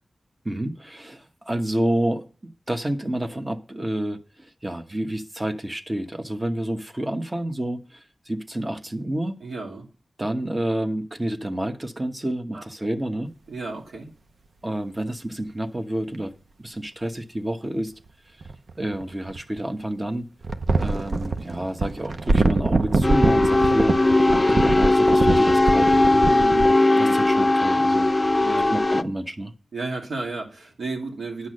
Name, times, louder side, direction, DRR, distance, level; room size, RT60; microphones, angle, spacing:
voice 1, 0.4-9.4 10.2-13.3 14.6-16.3 16.6-17.9 18.8-20.3 20.7-23.9 24.5-26.3 27.0-28.1 28.7-29.5, right 1 dB, 25° right, 1.1 m, -29 dB
voice 2, 9.4-9.9 12.5-12.6 13.5-14.1 24.3-24.5 26.2-27.2 28.4-28.7 29.7-31.5, right 3 dB, 80° right, 2.6 m, -33 dB
sound 1, 16.1-16.2 18.4-19.6 20.4-26.7, right 3 dB, 65° right, 0.8 m, -24 dB
sound 2, 23.0-29.0, left 2 dB, 25° left, 0.5 m, -19 dB
9.7 x 6.0 x 6.5 m
cardioid pair, 55°, 0 cm